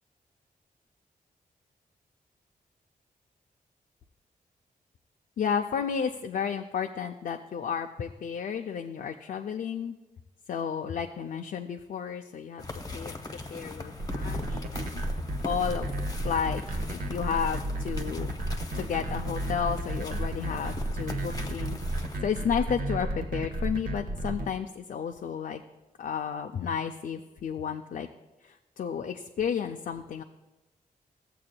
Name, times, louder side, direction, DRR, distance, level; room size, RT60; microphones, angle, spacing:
voice 1, 5.4-10.0 10.5-13.1 13.5-15.0 15.4-15.9 16.2-16.6 16.9-18.3 18.7-25.6 26.0-28.1 28.4-30.2, left 7 dB, 70° left, 4 dB, 0.4 m, -32 dB
sound 1, 12.6-22.2, left 2 dB, 25° left, 0.8 m, -40 dB
sound 2, 14.0-24.5, right 1 dB, 70° right, 0.8 m, -32 dB
15.0 x 7.5 x 2.2 m, 1.1 s
cardioid pair, 90°, 15 cm